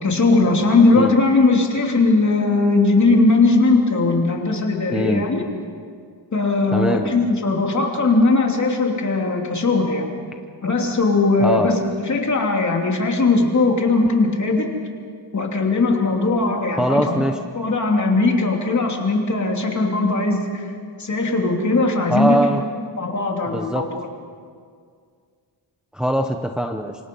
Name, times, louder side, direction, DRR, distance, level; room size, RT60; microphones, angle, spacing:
voice 1, 0.0-5.5 6.3-10.1 10.6-14.7 15.3-17.3 17.5-20.7 21.0-22.5 23.0-23.9, left 3 dB, 40° left, 1 dB, 3.2 m, -19 dB
voice 2, 4.9-5.2 6.7-7.1 11.4-11.7 16.8-17.4 22.1-22.6 23.5-23.9 25.9-26.9, equal, ahead, 4 dB, 0.8 m, -21 dB
28.0 x 25.5 x 5.5 m, 2.1 s
wide cardioid pair, 180°, 44 cm